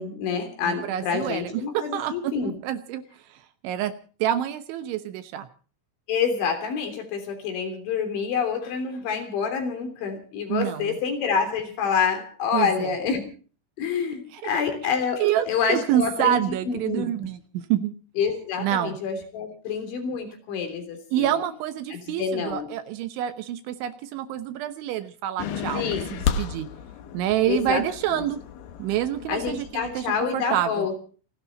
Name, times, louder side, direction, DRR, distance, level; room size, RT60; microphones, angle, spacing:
voice 1, 0.0-2.5 6.1-13.3 13.8-17.1 18.2-21.4 21.9-22.7 25.7-26.1 27.5-27.8 28.1-28.2 29.3-31.0, left 6 dB, 65° left, 6 dB, 5.6 m, -27 dB
voice 2, 0.7-3.0 3.3-3.4 3.6-3.9 4.2-5.5 10.5-11.0 12.5-12.9 14.3-14.6 15.2-17.9 18.6-19.0 21.1-26.7 27.1-28.4 28.8-30.1 30.3-30.9, right 11 dB, 75° right, 10 dB, 3.2 m, -27 dB
sound 1, 25.4-30.2, left 7 dB, 90° left, 1.9 m, -33 dB
29.0 x 11.5 x 4.1 m, 0.40 s
omnidirectional pair, 6.0 m